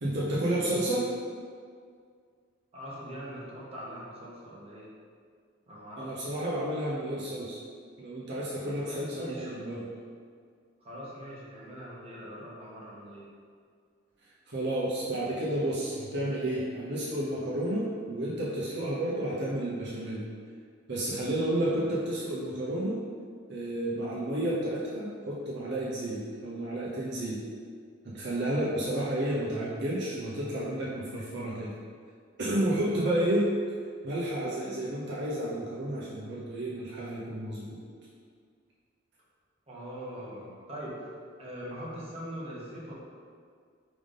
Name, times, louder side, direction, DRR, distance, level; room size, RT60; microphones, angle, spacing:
voice 1, 0.0-1.0 6.0-7.6 8.0-9.9 14.5-20.2 20.9-23.0 23.5-27.4 28.0-31.7 32.4-33.5 34.0-37.8, right 1 dB, 60° right, -7 dB, 0.9 m, -31 dB
voice 2, 2.7-4.9 5.7-6.3 8.8-9.6 10.8-13.3 32.9-33.3 39.7-42.9, equal, 30° right, -6 dB, 1.4 m, -42 dB
5.2 x 3.5 x 5.4 m, 2.1 s
head